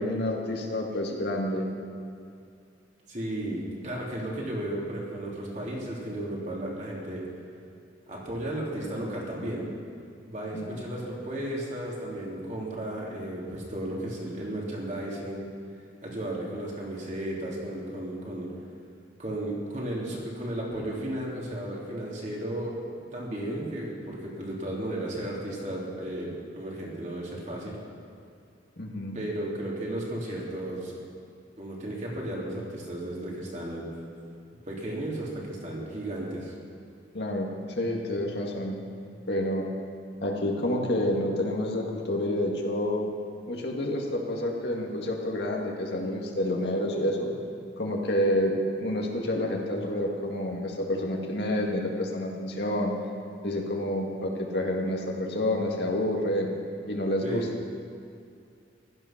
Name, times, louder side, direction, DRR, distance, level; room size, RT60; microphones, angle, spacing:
voice 1, 0.0-1.7 10.5-10.9 28.8-29.2 37.1-38.8 39.3-39.6 40.2-43.1 43.5-47.3 47.8-52.9 53.4-56.5 56.9-57.5, left 1 dB, 65° left, 0 dB, 2.0 m, -29 dB
voice 2, 3.1-7.2 8.1-9.7 10.2-15.5 16.0-18.5 19.2-22.8 23.1-27.8 29.1-31.0 31.6-33.8 34.7-36.5 57.2-57.5, right 1 dB, 40° right, -4 dB, 3.2 m, -34 dB
16.0 x 13.0 x 5.9 m, 2.5 s
head